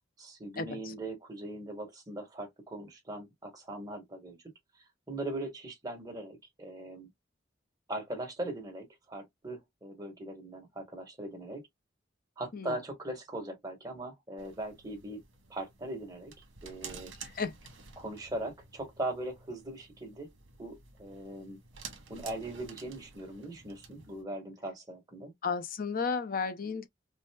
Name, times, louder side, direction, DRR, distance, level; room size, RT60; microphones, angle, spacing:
voice 1, 0.2-4.4 5.1-7.1 7.9-11.6 12.4-15.2 15.5-16.3 16.6-17.1 18.0-20.3 20.6-21.6 22.1-25.3, right 1 dB, 20° right, 1.5 m, -40 dB
sound 1, 14.4-24.2, right 5 dB, 80° right, 1.2 m, -51 dB
voice 2, 25.4-26.9, left 5 dB, 45° left, 0.6 m, -33 dB
5.2 x 2.0 x 2.3 m
head